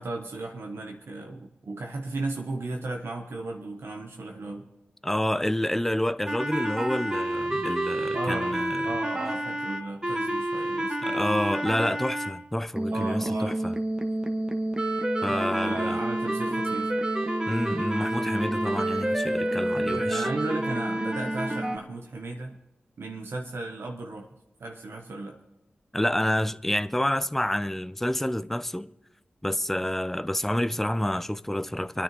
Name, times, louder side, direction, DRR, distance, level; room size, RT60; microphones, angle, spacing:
voice 1, 0.0-4.7 8.1-8.6 8.8-11.4 12.9-13.6 15.3-16.9 19.7-22.6 23.0-24.3 24.6-25.4, right 2 dB, 75° right, 0.9 m, -35 dB
voice 2, 5.0-8.9 11.0-13.7 15.2-16.0 17.5-20.3 25.9-28.9 29.4-32.0, left 1 dB, 5° left, 0.4 m, -28 dB
sound 1, 6.3-12.3 12.8-21.8, right 1 dB, 20° right, 1.4 m, -28 dB
25.0 x 9.8 x 3.0 m
cardioid pair, 40°, 4 cm